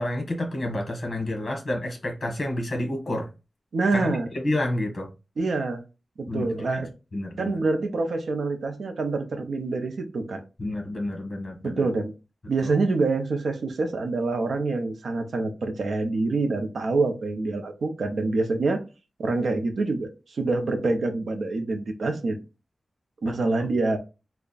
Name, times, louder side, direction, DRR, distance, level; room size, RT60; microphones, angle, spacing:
voice 1, 0.0-3.3 3.9-5.1 6.3-7.6 10.6-11.9 12.6-12.7 23.2-23.7, left 1 dB, 45° left, 1.3 m, -30 dB
voice 2, 3.7-4.3 5.4-5.8 6.2-6.9 7.4-10.4 11.6-12.1 12.5-18.8 19.2-22.4 23.2-24.0, right 3 dB, 85° right, 0.7 m, -26 dB
3.3 x 2.2 x 3.9 m
wide cardioid pair, 105°, 0 cm